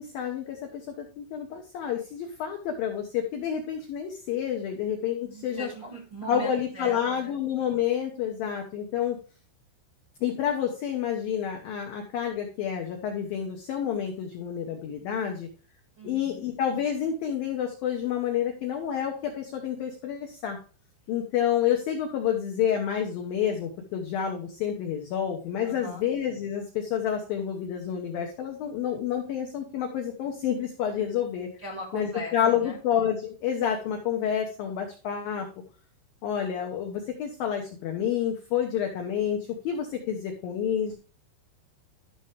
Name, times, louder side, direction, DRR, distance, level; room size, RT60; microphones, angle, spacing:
voice 1, 0.0-5.7 6.3-9.2 10.2-15.5 16.0-20.6 21.1-31.5 31.9-35.5 36.2-41.0, left 9 dB, 80° left, 2 dB, 2.0 m, -29 dB
voice 2, 5.2-7.3 16.0-16.4 25.6-26.1 31.6-32.8, right 1 dB, 55° right, -2 dB, 1.2 m, -40 dB
13.0 x 5.6 x 3.2 m, 0.38 s
omnidirectional pair, 5.6 m